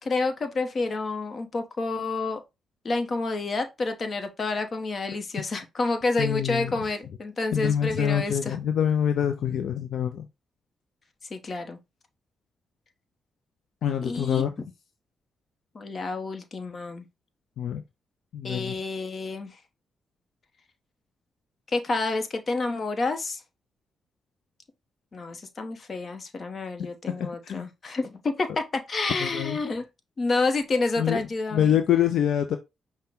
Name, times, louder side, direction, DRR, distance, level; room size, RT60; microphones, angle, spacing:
voice 1, 0.0-2.4 2.8-8.6 11.3-11.8 14.0-14.5 15.7-17.1 18.4-19.6 21.7-23.4 25.1-29.8 30.2-31.7, left 3 dB, 50° left, 0.9 m, -29 dB
voice 2, 6.2-6.8 7.5-10.3 13.8-14.5 17.6-17.8 18.3-18.8 27.2-27.7 29.2-29.6 31.0-32.6, left 9 dB, 80° left, 0.4 m, -26 dB
5.6 x 2.2 x 3.6 m
cardioid pair, 60°, 0 cm